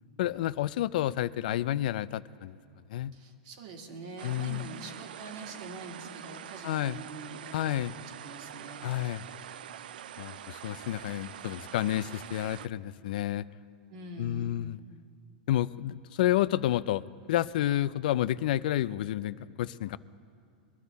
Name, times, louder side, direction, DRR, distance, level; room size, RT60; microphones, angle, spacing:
voice 1, 0.2-2.6 2.9-3.1 4.2-4.6 6.6-7.0 7.5-7.9 8.8-9.2 10.2-13.5 14.2-14.8 15.5-17.0 17.3-20.0, left 13 dB, 70° left, 17 dB, 0.3 m, -30 dB
voice 2, 3.1-8.9 13.9-14.7, right 2 dB, 60° right, 3 dB, 1.9 m, -45 dB
sound 1, 4.2-12.7, right 10 dB, 90° right, 0.3 m, -45 dB
21.5 x 11.5 x 4.1 m, 2.3 s
supercardioid pair, 145°, 5 cm